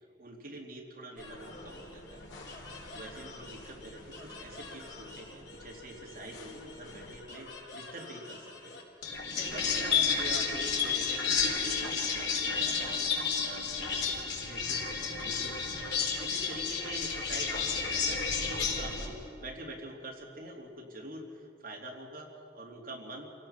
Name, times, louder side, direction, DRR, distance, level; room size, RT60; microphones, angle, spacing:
voice 1, 0.2-2.3 2.9-23.5, right 1 dB, 50° right, -2 dB, 3.2 m, -46 dB
sound 1, 1.2-19.1, left 5 dB, 85° left, 4.0 m, -33 dB
27.5 x 17.0 x 5.9 m, 2.6 s
head